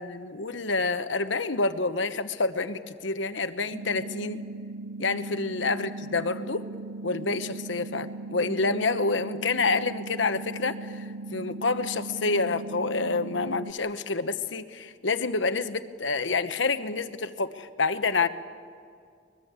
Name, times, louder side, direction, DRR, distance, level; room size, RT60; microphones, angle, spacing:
voice 1, 0.0-4.4 5.0-6.7 7.0-11.0 11.3-18.3, left 3 dB, 75° left, 10 dB, 1.1 m, -28 dB
sound 1, 3.7-13.7, right 2 dB, 75° right, 0.9 m, -38 dB
24.0 x 21.5 x 8.2 m, 2.2 s
head